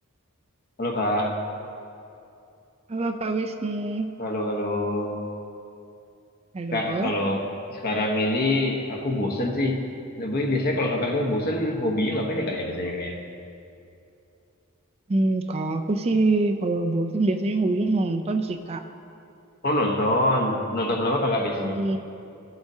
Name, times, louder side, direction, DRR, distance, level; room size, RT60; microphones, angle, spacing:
voice 1, 0.8-1.4 4.2-5.2 6.7-9.8 10.2-13.2 19.6-21.8, left 1 dB, 45° left, 1 dB, 1.1 m, -25 dB
voice 2, 2.9-4.1 6.5-7.1 15.1-18.8 21.7-22.0, right 2 dB, 30° right, 5 dB, 0.4 m, -25 dB
16.5 x 8.0 x 2.8 m, 2.6 s
head